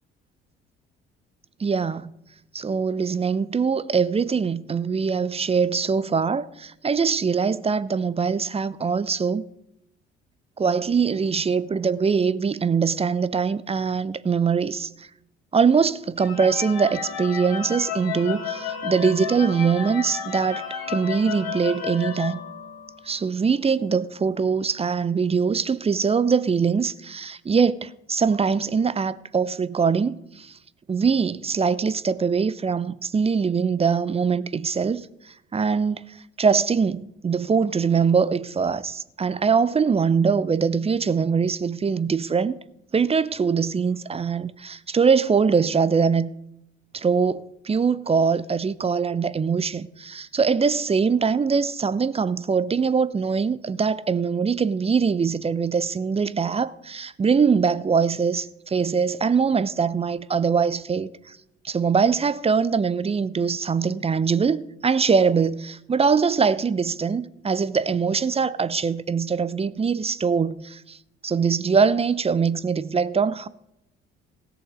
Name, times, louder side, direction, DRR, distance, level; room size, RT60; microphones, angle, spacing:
voice 1, 1.6-2.1 2.5-9.4 10.6-15.1 15.5-22.4 23.0-30.6 30.9-42.6 42.9-46.3 46.9-61.4 61.6-71.0 71.2-73.5, right 5 dB, 20° right, 0.5 m, -23 dB
sound 1, 16.2-23.2, left 7 dB, 75° left, 2.0 m, -32 dB
16.5 x 7.0 x 5.1 m
hypercardioid pair, 50°, 30 cm